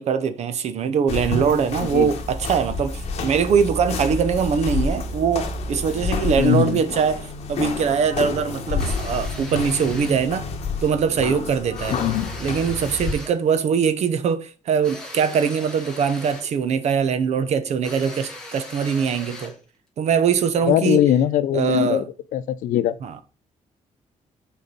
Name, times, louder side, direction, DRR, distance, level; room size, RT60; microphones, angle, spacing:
voice 1, 0.0-10.5 10.8-12.0 12.4-19.5 20.0-21.0 21.5-22.0 23.0-23.2, right 6 dB, 55° right, 0.9 m, -22 dB
sound 1, 1.1-13.1, left 4 dB, 55° left, 1.4 m, -29 dB
voice 2, 6.4-6.8 11.9-12.3 20.7-22.0 22.3-22.9, left 11 dB, 90° left, 0.6 m, -20 dB
sound 2, 8.8-10.2 11.7-13.4 14.8-16.6 17.8-19.6, left 1 dB, 5° left, 1.7 m, -39 dB
6.8 x 4.8 x 5.3 m
cardioid pair, 160°, 13 cm